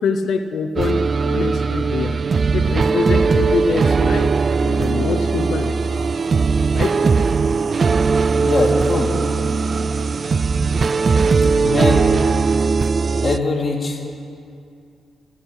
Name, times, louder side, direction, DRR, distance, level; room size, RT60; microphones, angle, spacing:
voice 1, 0.0-2.2 2.5-4.3 4.6-5.8 6.7-7.0, left 5 dB, 70° left, 8 dB, 0.7 m, -24 dB
sound 1, 0.8-13.4, right 4 dB, 45° right, 0.3 m, -19 dB
Male singing, 2.1-11.9, right 4 dB, 80° right, 1.7 m, -36 dB
voice 2, 8.4-9.2 11.2-12.2 13.2-14.1, left 3 dB, 40° left, 1 dB, 2.4 m, -22 dB
13.0 x 9.2 x 9.9 m, 2.5 s
cardioid pair, 75°, 0 cm